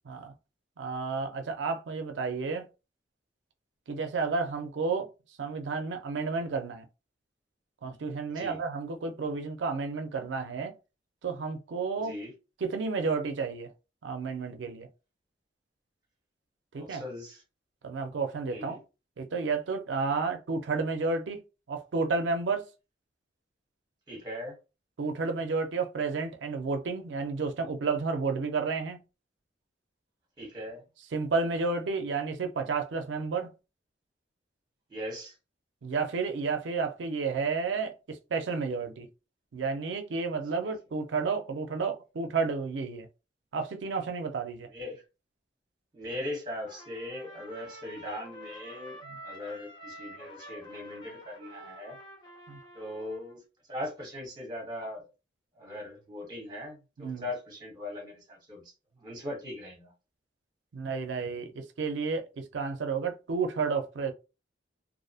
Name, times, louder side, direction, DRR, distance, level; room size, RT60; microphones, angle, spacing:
voice 1, 0.8-2.7 3.9-5.1 5.4-6.9 7.8-10.7 11.2-12.1 12.6-13.7 14.0-14.9 16.7-17.0 17.8-18.8 19.2-21.4 21.7-22.7 25.0-29.0 31.1-33.5 35.8-39.1 39.5-43.1 43.5-44.7 49.0-49.2 52.5-52.6 57.0-57.3 60.7-64.1, right 4 dB, 85° right, 0.5 m, -31 dB
voice 2, 8.3-8.6 12.0-12.3 16.8-17.4 18.5-18.8 24.1-24.6 30.4-30.8 34.9-35.3 40.6-40.7 44.7-45.0 45.9-52.0 52.7-53.4 53.7-55.0 55.5-58.6 59.0-59.9, left 1 dB, 25° right, 1.0 m, -39 dB
Trumpet, 46.6-53.4, equal, 25° left, 0.7 m, -48 dB
2.5 x 2.0 x 2.6 m
head